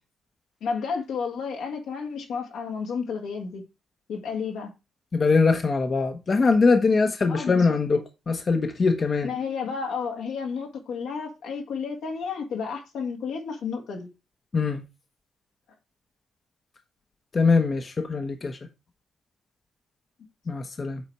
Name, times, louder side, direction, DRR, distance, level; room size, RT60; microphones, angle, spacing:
voice 1, 0.6-3.6 4.1-4.7 7.3-7.8 9.2-14.1, left 5 dB, 80° left, 2.0 m, -31 dB
voice 2, 5.1-9.3 14.5-14.8 17.3-18.6 20.5-21.0, left 4 dB, 40° left, 1.0 m, -22 dB
8.4 x 4.2 x 4.6 m
cardioid pair, 75°, 0 cm